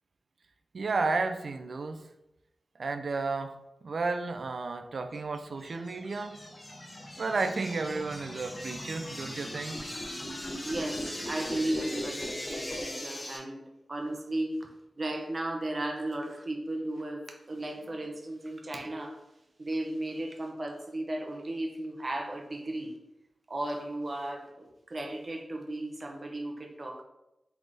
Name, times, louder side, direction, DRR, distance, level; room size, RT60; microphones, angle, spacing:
voice 1, 0.7-2.1 2.8-6.5 7.2-9.9, right 3 dB, 65° right, 8 dB, 0.4 m, -32 dB
sound 1, 5.4-13.4, left 1 dB, 30° left, 0.8 m, -39 dB
voice 2, 10.6-13.6 13.9-14.7 15.0-19.2 19.6-23.0 23.5-27.0, right 1 dB, 45° right, 3 dB, 0.8 m, -35 dB
3.9 x 3.5 x 3.4 m, 0.90 s
wide cardioid pair, 90°, 0 cm